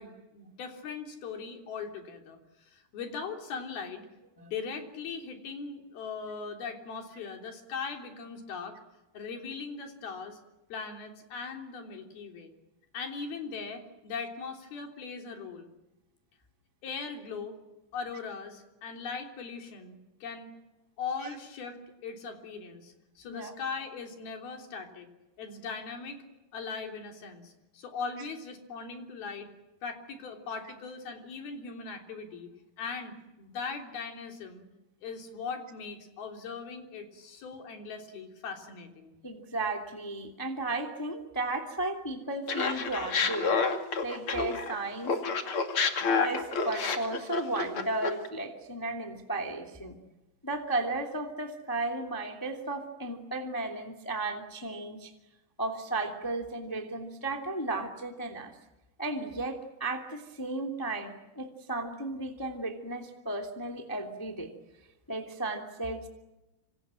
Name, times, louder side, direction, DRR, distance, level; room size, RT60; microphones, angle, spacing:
voice 1, 0.0-2.4 2.7-4.1 4.4-8.8 9.1-10.4 10.7-12.5 12.9-15.7 16.8-17.6 17.9-20.6 21.0-25.1 25.4-26.2 26.5-29.5 29.8-32.5 32.8-34.7 35.0-39.1, left 5 dB, 70° left, 4 dB, 5.2 m, -39 dB
voice 2, 39.2-43.5 44.0-45.2 46.0-50.0 50.4-55.1 55.6-58.5 59.0-64.5 65.1-66.1, right 2 dB, 5° left, 4 dB, 1.9 m, -34 dB
Laughter, 42.5-44.8 45.1-48.3, left 5 dB, 40° left, 2.7 m, -29 dB
27.0 x 26.5 x 7.7 m, 1.0 s
omnidirectional pair, 4.5 m